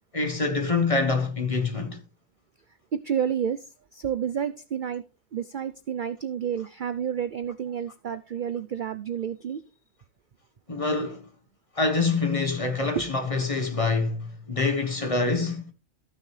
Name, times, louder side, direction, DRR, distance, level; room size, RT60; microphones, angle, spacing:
voice 1, 0.1-2.0 10.7-11.3 11.7-15.7, left 3 dB, 25° left, 1.3 m, -26 dB
voice 2, 2.9-5.0 5.3-9.6 13.0-13.1, right 8 dB, 55° right, 0.5 m, -30 dB
14.5 x 6.3 x 3.3 m
omnidirectional pair, 1.4 m